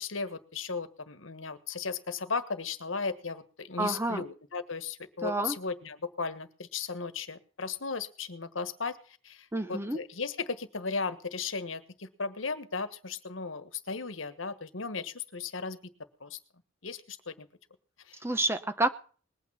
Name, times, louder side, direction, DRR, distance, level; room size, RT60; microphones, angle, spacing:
voice 1, 0.0-15.8 16.2-16.4 16.8-17.5 18.0-18.2, left 4 dB, 80° left, 11 dB, 1.4 m, -36 dB
voice 2, 3.8-4.2 5.2-5.6 9.5-10.0 18.2-18.9, right 2 dB, 10° right, 10 dB, 0.9 m, -29 dB
20.5 x 8.9 x 5.6 m, 0.41 s
head